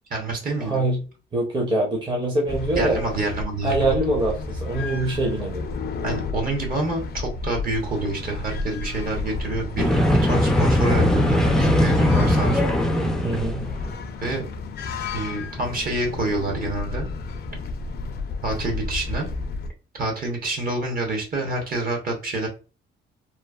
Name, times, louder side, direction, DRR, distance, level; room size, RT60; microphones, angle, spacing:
voice 1, 0.1-0.8 2.8-4.0 6.0-12.6 14.2-14.4 15.1-17.1 18.4-19.3 19.9-22.5, right 2 dB, 45° right, 1 dB, 1.1 m, -27 dB
voice 2, 0.6-1.0 1.3-3.0 3.6-5.6 13.2-13.7, right 2 dB, 25° right, -1 dB, 0.8 m, -24 dB
sound 1, 2.5-19.7, left 3 dB, 55° left, 0.5 m, -32 dB
sound 2, 9.8-14.0, left 1 dB, 5° left, 0.4 m, -20 dB
3.0 x 2.0 x 2.3 m, 0.34 s
cardioid pair, 90°, 20 cm